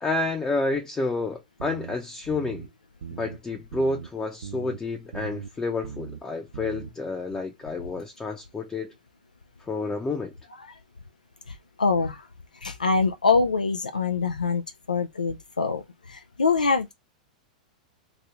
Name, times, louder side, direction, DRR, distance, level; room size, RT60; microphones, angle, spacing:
voice 1, 0.0-2.7 3.1-8.9 9.6-10.3, left 3 dB, 15° left, 0.6 m, -29 dB
sound 1, 1.6-2.0 2.3-2.7 3.0-3.4 3.7-4.1 4.4-4.8 5.1-5.5 5.8-6.2 6.5-6.9, right 7 dB, 75° right, 0.4 m, -38 dB
voice 2, 11.5-12.3 12.6-14.6 14.9-16.9, left 4 dB, 90° left, 0.4 m, -25 dB
3.0 x 2.7 x 3.3 m
figure-of-eight pair, 100°, 4 cm